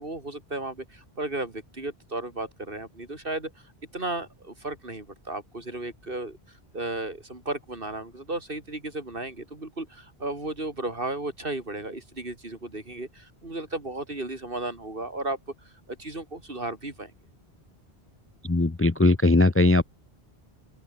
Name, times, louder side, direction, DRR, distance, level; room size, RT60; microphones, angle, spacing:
voice 1, 0.0-3.5 3.9-6.4 6.7-15.4 15.9-17.1, right 2 dB, 60° right, 4.2 m, -34 dB
voice 2, 18.5-19.8, left 2 dB, 15° left, 0.5 m, -19 dB
open air
omnidirectional pair, 1.1 m